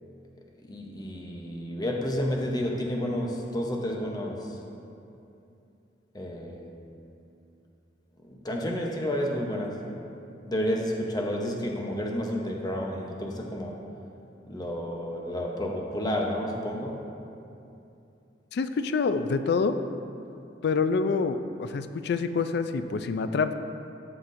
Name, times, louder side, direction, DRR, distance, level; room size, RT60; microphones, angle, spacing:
voice 1, 0.6-4.6 6.1-6.7 8.2-9.8 10.5-13.8 14.4-17.0, equal, 25° left, 0 dB, 0.8 m, -31 dB
voice 2, 18.5-19.8 20.6-23.5, left 4 dB, 65° left, 10 dB, 0.4 m, -26 dB
13.5 x 5.9 x 2.6 m, 2.7 s
head